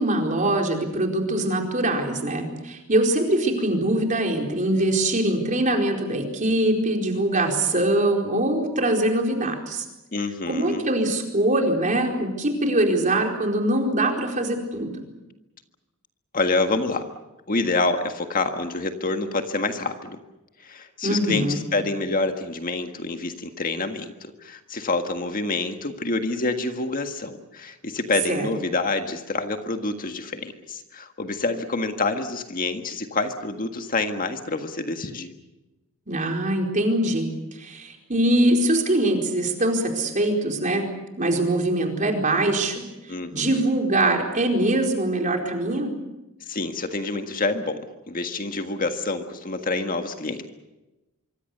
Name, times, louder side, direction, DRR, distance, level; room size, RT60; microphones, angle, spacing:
voice 1, 0.0-9.8 10.5-14.9 21.0-21.7 28.3-28.5 36.1-37.3 37.6-40.9 41.2-42.8 43.3-45.9, right 1 dB, 35° right, 2 dB, 4.5 m, -23 dB
voice 2, 10.1-10.8 16.3-17.0 17.5-20.2 20.6-35.3 43.1-43.6 46.5-50.5, left 3 dB, 40° left, 6 dB, 1.7 m, -27 dB
25.0 x 24.5 x 6.8 m, 1.0 s
head